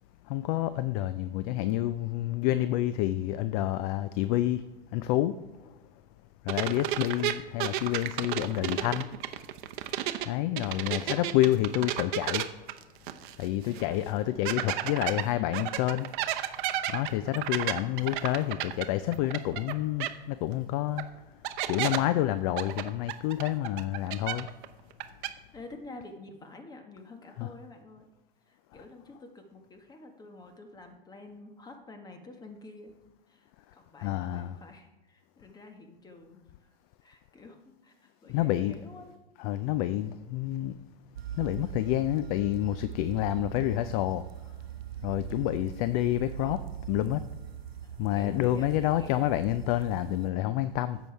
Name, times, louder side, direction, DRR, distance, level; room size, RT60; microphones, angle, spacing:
voice 1, 0.3-4.6 4.9-5.3 6.4-9.1 10.3-12.5 13.4-16.1 16.9-21.1 21.7-24.5 27.4-27.5 34.0-34.6 38.3-38.7 39.4-40.7 41.4-44.2 45.0-46.6 46.9-47.2 48.0-51.0, left 14 dB, 40° left, 14 dB, 0.4 m, -28 dB
sound 1, 6.5-10.3 10.6-13.5 13.8-13.9 14.5-19.7 20.0-20.1 21.0-21.1 21.4-22.0 22.6-24.7 24.9-25.3, right 13 dB, 55° right, 0.8 m, -32 dB
voice 2, 10.7-11.3 13.6-14.5 25.5-28.1 28.4-32.9 33.3-36.7 37.0-39.1 46.4-46.7 47.8-49.3, left 2 dB, 15° left, 5 dB, 1.3 m, -49 dB
sound 2, 41.1-50.3, right 11 dB, 85° right, 0.7 m, -41 dB
10.0 x 7.1 x 4.6 m, 1.2 s
hypercardioid pair, 125°, 30 cm